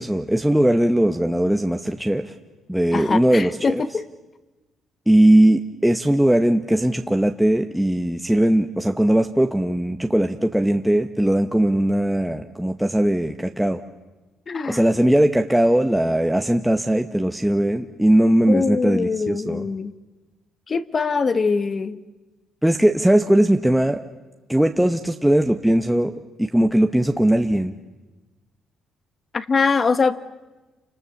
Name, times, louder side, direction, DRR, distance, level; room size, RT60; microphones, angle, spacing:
voice 1, 0.0-2.3 2.7-3.8 5.1-13.8 14.7-19.7 22.6-24.0 24.5-26.1 26.4-27.7, right 1 dB, 5° right, 0.9 m, -19 dB
voice 2, 2.9-4.1 14.5-14.8 18.5-19.9 20.7-22.0 29.3-30.2, left 4 dB, 35° left, 1.1 m, -23 dB
29.0 x 25.5 x 7.1 m
cardioid pair, 125°, 0 cm